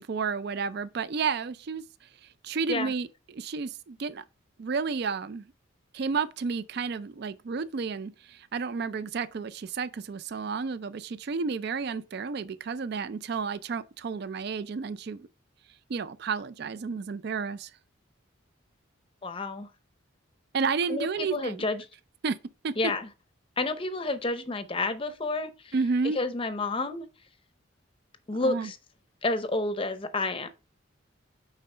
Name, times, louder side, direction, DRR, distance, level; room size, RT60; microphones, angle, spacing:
voice 1, 0.0-1.8 2.4-4.2 4.6-5.5 5.9-15.3 15.9-17.7 20.5-21.6 22.2-22.4 22.6-22.7 25.7-26.2 28.4-28.7, right 5 dB, 50° right, 0.4 m, -31 dB
voice 2, 19.2-19.7 20.9-21.9 22.8-23.1 23.6-25.7 26.1-27.1 28.3-28.8 29.2-30.5, left 2 dB, 25° left, 0.6 m, -30 dB
8.9 x 3.8 x 3.3 m
head